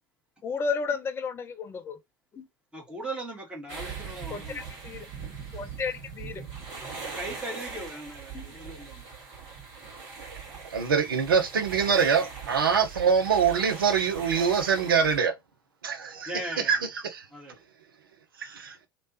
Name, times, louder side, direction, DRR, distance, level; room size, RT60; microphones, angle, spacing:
voice 1, 0.4-2.0 2.3-2.4 4.3-5.1 5.5-6.4 8.3-8.5, left 5 dB, 20° left, 0.6 m, -33 dB
voice 2, 2.7-4.6 7.1-9.0 16.2-16.8 17.3-17.6, right 1 dB, 10° right, 1.6 m, -38 dB
sound 1, 3.7-15.2, right 5 dB, 45° right, 1.9 m, -41 dB
voice 3, 10.7-15.3 15.8-16.3 16.6-16.8 17.0-17.2 18.4-18.8, right 6 dB, 70° right, 0.7 m, -24 dB
3.1 x 3.0 x 2.8 m
figure-of-eight pair, 75°, 12 cm